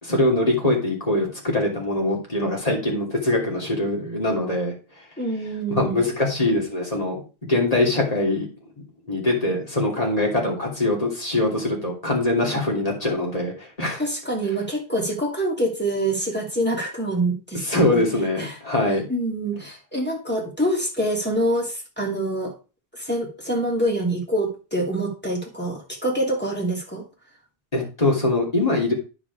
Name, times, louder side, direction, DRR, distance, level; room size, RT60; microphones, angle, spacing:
voice 1, 0.0-4.7 5.7-7.2 7.5-8.5 9.1-14.0 17.7-19.0 27.7-28.9, left 2 dB, 35° left, -1 dB, 3.0 m, -23 dB
voice 2, 5.2-6.0 12.5-12.7 14.0-18.0 18.4-18.6 19.1-22.5 22.9-27.0, right 1 dB, 10° left, -1 dB, 2.8 m, -26 dB
9.7 x 5.2 x 4.7 m, 0.32 s
omnidirectional pair, 1.1 m